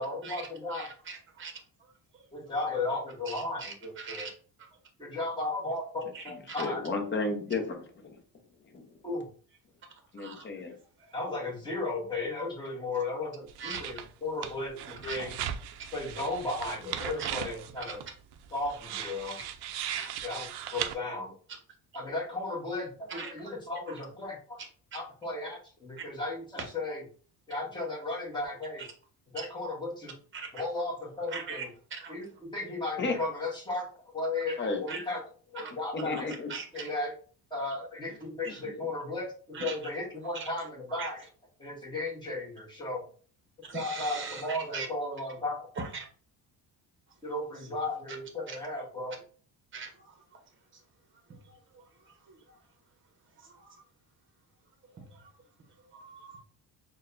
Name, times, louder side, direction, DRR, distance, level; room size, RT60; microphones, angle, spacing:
voice 1, 0.0-0.8 2.3-4.3 5.0-6.8 9.0-9.2 11.1-15.4 15.9-18.0 18.5-19.4 20.2-21.3 21.9-24.6 24.9-27.0 27.5-28.8 29.3-30.1 30.5-31.7 32.1-33.8 34.1-35.2 35.5-36.3 36.7-37.1 37.5-41.3 41.6-43.0 43.7-45.7 47.2-49.1, left 2 dB, 10° left, -3 dB, 1.2 m, -35 dB
voice 2, 0.7-1.5 3.3-4.3 6.1-6.6 10.2-10.4 13.6-13.8 15.0-15.3 17.0-17.3 17.8-18.0 20.0-20.1 23.1-23.3 28.8-28.9 29.4-29.5 30.3-30.5 31.3-31.6 31.9-32.1 34.9-35.0 35.6-35.7 36.1-36.2 36.5-36.9 39.5-39.7 40.4-40.5 41.0-41.1 43.7-44.9 45.8-46.0 48.5-48.6 49.7-49.9 55.0-55.1 55.9-56.4, right 5 dB, 30° right, 4 dB, 0.9 m, -40 dB
voice 3, 6.3-8.2 8.7-8.8 10.1-10.7 33.0-33.2 34.6-34.8 35.9-36.5 38.5-38.6, left 3 dB, 25° left, 3 dB, 0.8 m, -33 dB
sound 1, 13.5-14.1 14.4-20.9, right 10 dB, 70° right, 0.5 m, -38 dB
6.1 x 2.3 x 2.5 m, 0.42 s
cardioid pair, 170°, 41 cm